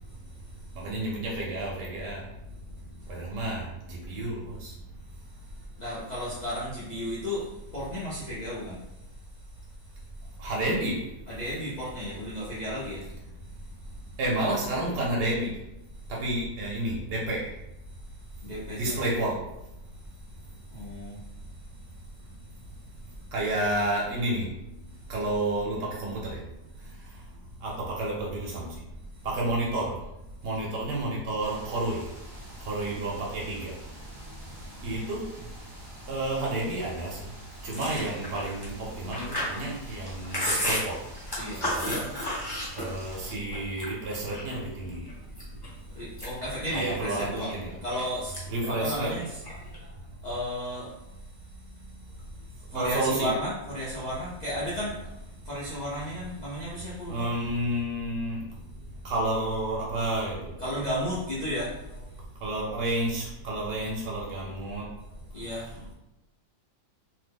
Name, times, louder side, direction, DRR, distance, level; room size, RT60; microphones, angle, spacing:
voice 1, 0.0-0.8 3.0-3.2 5.1-10.4 11.3-14.2 15.9-16.0 17.9-19.0 19.9-23.3 24.9-25.1 26.8-26.9 29.1-29.3 32.4-32.7 34.1-35.0 35.4-35.5 35.7-36.1 37.6-37.7 41.3-41.7 42.7-42.9 45.6-47.6 47.8-49.4 50.2-57.3 60.6-62.0 65.3-65.9, equal, 75° left, -9 dB, 0.4 m, -36 dB
voice 2, 0.8-2.2 3.1-3.6 3.9-4.7 10.4-11.0 14.2-15.5 16.1-17.4 18.8-19.3 23.3-24.5 25.1-26.4 27.6-28.7 29.2-29.9 30.4-32.0 32.7-33.7 34.8-35.2 36.1-37.2 37.6-39.2 39.5-40.9 41.6-42.0 42.7-45.0 46.7-47.7 48.5-49.1 52.7-53.3 57.1-58.4 59.0-60.5 62.4-64.8, right 1 dB, 80° right, -4 dB, 1.3 m, -30 dB
sound 1, 31.4-43.3, equal, 45° right, 0.6 m, -47 dB
Chewing mastication, 37.7-43.2 43.5-44.6 45.1-45.7 46.0-48.0 48.3-48.7 48.9-49.8, left 1 dB, 20° left, 0.7 m, -32 dB
3.0 x 2.1 x 3.4 m, 0.92 s
omnidirectional pair, 1.8 m